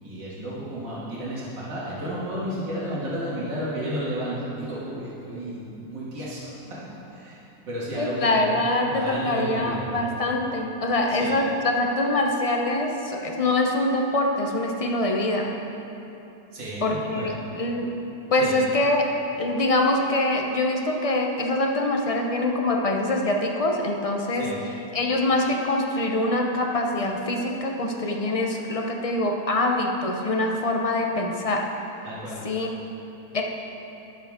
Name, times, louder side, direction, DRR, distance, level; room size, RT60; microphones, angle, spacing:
voice 1, 0.0-6.8 7.1-8.6 8.9-9.9 11.1-11.4 16.5-17.4 18.3-18.5 24.3-24.6 32.0-32.4, right 1 dB, 75° right, -9 dB, 3.1 m, -32 dB
voice 2, 8.0-15.5 16.8-17.3 17.6-17.9 18.3-19.0 19.4-24.5 24.9-31.6 32.4-32.7 33.3-33.4, left 2 dB, 45° left, 1 dB, 0.4 m, -24 dB
20.5 x 7.2 x 3.6 m, 3.0 s
omnidirectional pair, 1.9 m